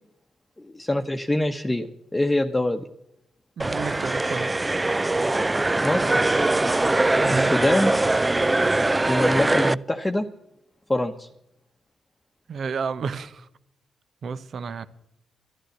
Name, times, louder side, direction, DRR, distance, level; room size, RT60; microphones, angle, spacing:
voice 1, 0.6-2.9 5.8-6.3 7.3-7.9 9.1-10.3 10.9-11.3, left 1 dB, 20° left, 1.0 m, -24 dB
sound 1, 3.6-9.7, right 2 dB, 25° right, 0.4 m, -22 dB
voice 2, 3.6-4.5 7.2-7.5 12.5-13.5 14.2-14.9, right 5 dB, 65° right, 0.9 m, -31 dB
11.5 x 11.5 x 8.0 m
supercardioid pair, 45°, 0 cm